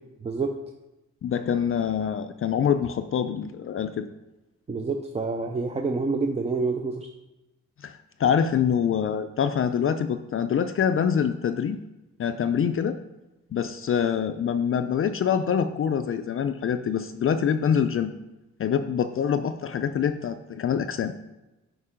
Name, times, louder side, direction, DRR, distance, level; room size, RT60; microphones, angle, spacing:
voice 1, 0.2-0.5 4.7-7.1, right 4 dB, 20° right, 4 dB, 0.5 m, -27 dB
voice 2, 1.2-4.1 7.8-11.8 12.2-13.0 13.5-18.1 18.6-21.1, left 8 dB, 45° left, 9 dB, 0.4 m, -25 dB
10.0 x 4.6 x 5.0 m, 1.0 s
wide cardioid pair, 170°, 30 cm